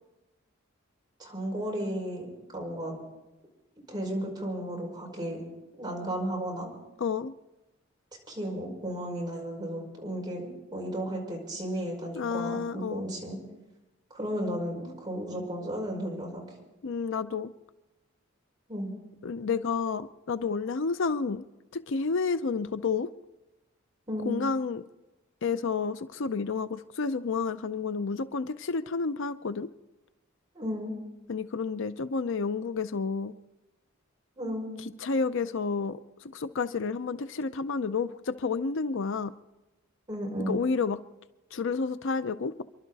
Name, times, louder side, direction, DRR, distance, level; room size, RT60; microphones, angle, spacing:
voice 1, 1.2-2.3 2.5-2.9 3.9-5.4 5.8-6.7 8.3-13.4 14.1-16.4 18.7-18.9 24.1-24.4 30.5-30.9 34.4-34.8 40.1-40.6, equal, 20° right, -2 dB, 5.3 m, -34 dB
voice 2, 7.0-7.3 12.2-13.0 16.8-17.5 19.2-21.4 21.7-23.1 24.2-24.8 25.4-29.7 31.3-33.3 34.8-39.3 40.5-41.0 41.5-42.6, left 4 dB, 65° left, 12 dB, 0.6 m, -30 dB
29.0 x 12.0 x 4.1 m, 1.0 s
head